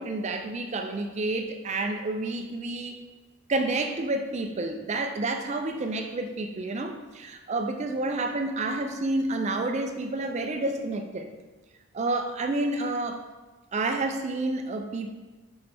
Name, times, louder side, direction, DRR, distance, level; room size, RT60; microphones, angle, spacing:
voice 1, 0.0-3.0 3.5-11.3 11.9-13.2 13.7-15.1, right 2 dB, 30° right, 6 dB, 0.3 m, -29 dB
7.0 x 5.2 x 3.3 m, 1.2 s
head